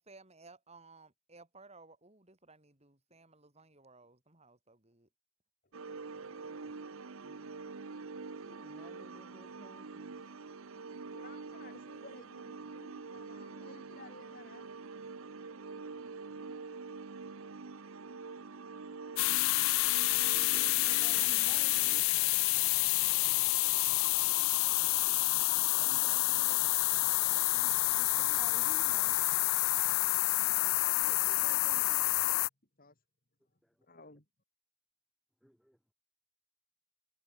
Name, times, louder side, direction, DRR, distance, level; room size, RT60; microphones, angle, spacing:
voice 1, 0.0-5.1, right 3 dB, 30° right, 4.3 m, -58 dB
sound 1, 5.7-22.0, right 4 dB, 70° right, 0.8 m, -46 dB
voice 2, 6.2-6.6 7.2-7.6 11.1-14.6 20.8-21.4 25.8-26.7 31.0-32.1 32.8-33.0 33.9-34.2, left 3 dB, 40° left, 5.1 m, -55 dB
voice 3, 8.4-10.3 20.1-21.7 27.2-29.2 33.6-33.7 35.4-35.8, equal, ahead, 2.1 m, -56 dB
sound 2, 19.2-32.5, left 20 dB, 65° left, 0.3 m, -28 dB
head